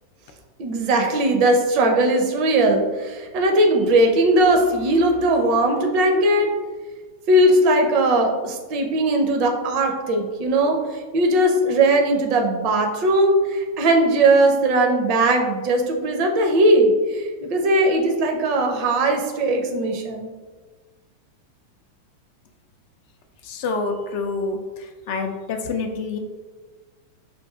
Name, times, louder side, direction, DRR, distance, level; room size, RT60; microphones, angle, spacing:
voice 1, 0.6-6.5 7.3-10.8 11.1-20.3, right 1 dB, 45° right, 2 dB, 0.6 m, -19 dB
voice 2, 23.5-24.6 25.1-26.2, left 4 dB, 50° left, 5 dB, 0.4 m, -26 dB
5.9 x 2.6 x 2.3 m, 1.4 s
figure-of-eight pair, 90°, 0 cm